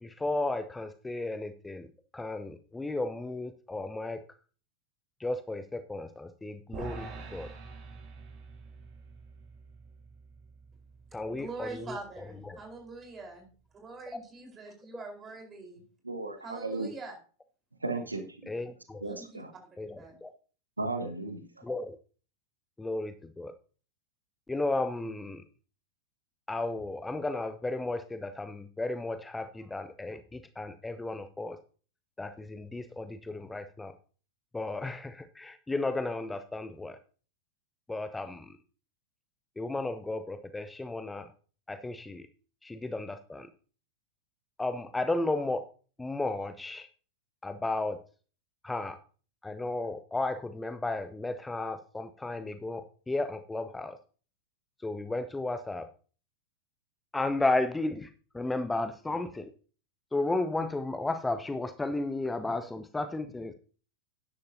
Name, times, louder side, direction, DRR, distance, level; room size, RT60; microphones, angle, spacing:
voice 1, 0.0-4.2 5.2-7.5 11.1-12.6 18.5-19.0 19.8-20.3 21.6-22.0 22.8-23.5 24.5-25.4 26.5-31.6 32.2-33.9 34.5-37.0 37.9-38.5 39.6-41.3 41.7-42.3 42.6-43.5 44.6-45.6 46.0-46.9 47.4-48.0 48.6-49.0 49.4-54.0 54.8-55.9 57.1-59.5 60.1-63.5, left 2 dB, 10° left, 11 dB, 0.6 m, -34 dB
sound 1, 6.7-13.1, right 4 dB, 40° right, 2.6 m, -47 dB
voice 2, 11.3-13.5 13.8-15.8 16.4-17.2 19.0-19.4 20.0-20.2, right 3 dB, 20° right, 3 dB, 4.3 m, -44 dB
voice 3, 16.0-16.9 17.8-18.5 19.0-19.5 20.8-21.6, right 2 dB, 80° right, 7 dB, 1.3 m, -35 dB
12.0 x 10.5 x 2.8 m, 0.39 s
figure-of-eight pair, 90°, 0 cm